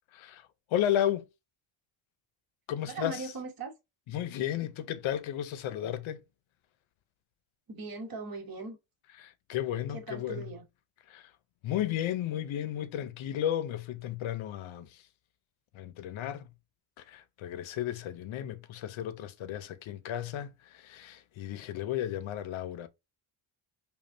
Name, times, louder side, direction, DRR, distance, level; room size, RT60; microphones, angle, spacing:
voice 1, 0.1-1.3 2.7-3.3 4.1-6.2 9.2-10.5 11.1-11.3 11.6-15.1 15.7-16.5 17.0-22.9, left 11 dB, 70° left, 0.7 m, -34 dB
voice 2, 2.9-3.7 7.7-8.8 9.9-10.6, right 3 dB, 45° right, 1.4 m, -39 dB
5.2 x 2.4 x 2.7 m
cardioid pair, 135°, 49 cm